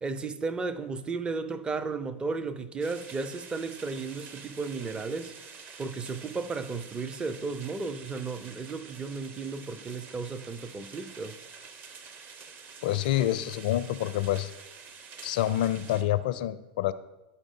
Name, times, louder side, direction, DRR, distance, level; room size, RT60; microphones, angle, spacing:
voice 1, 0.0-5.3 5.8-11.4, right 4 dB, 20° right, 0.5 m, -34 dB
sound 1, 2.8-16.0, right 5 dB, 35° right, 0.9 m, -48 dB
voice 2, 12.8-14.5 15.2-16.9, left 13 dB, 60° left, 0.4 m, -27 dB
11.0 x 4.9 x 3.7 m
figure-of-eight pair, 90°, 5 cm